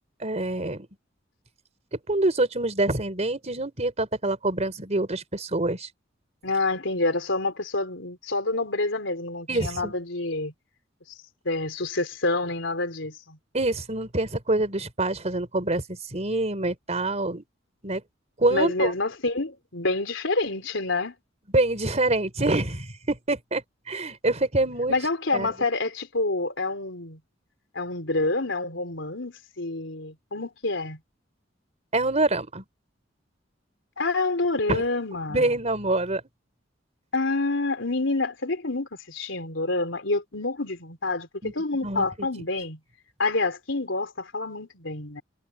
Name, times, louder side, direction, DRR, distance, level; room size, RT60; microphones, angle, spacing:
voice 1, 0.2-0.9 2.1-5.9 9.5-9.9 13.5-17.4 17.8-18.0 18.4-18.9 21.5-23.6 23.9-25.0 25.3-25.5 31.9-32.6 34.7-34.8 35.3-36.2 41.4-41.5 41.8-42.1, right 2 dB, 35° right, 4.0 m, -25 dB
voice 2, 6.4-10.5 11.5-13.4 18.5-21.2 24.9-27.2 27.7-31.0 34.0-35.4 37.1-42.8 43.2-45.2, left 2 dB, 80° left, 3.7 m, -27 dB
head